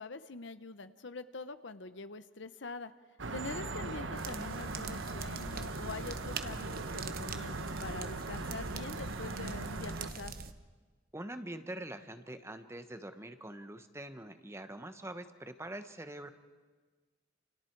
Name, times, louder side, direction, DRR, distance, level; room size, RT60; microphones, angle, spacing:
voice 1, 0.0-2.9 3.3-10.3, left 3 dB, 70° left, 12 dB, 0.9 m, -44 dB
sound 1, 3.2-10.1, right 3 dB, 80° right, 1.2 m, -40 dB
sound 2, 4.2-10.5, right 4 dB, 50° right, 1.1 m, -44 dB
voice 2, 11.1-16.3, right 1 dB, 15° right, 8 dB, 1.2 m, -44 dB
29.5 x 28.5 x 4.7 m, 1.4 s
head